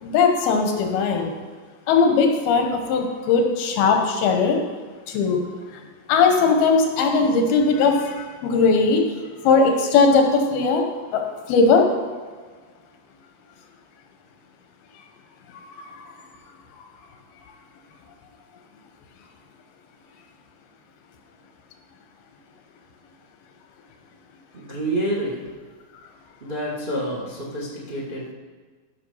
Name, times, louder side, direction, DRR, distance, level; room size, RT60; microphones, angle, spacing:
voice 1, 0.0-1.3 1.9-4.6 5.1-5.4 5.7-5.8 6.1-9.1 9.4-10.8 11.1-11.2 11.5-11.9 15.8-16.0 16.8-16.9, left 4 dB, 80° left, 3 dB, 3.0 m, -19 dB
voice 2, 24.5-25.5 26.4-28.3, right 1 dB, 65° right, -3 dB, 0.5 m, -28 dB
15.0 x 6.0 x 5.6 m, 1.5 s
omnidirectional pair, 4.4 m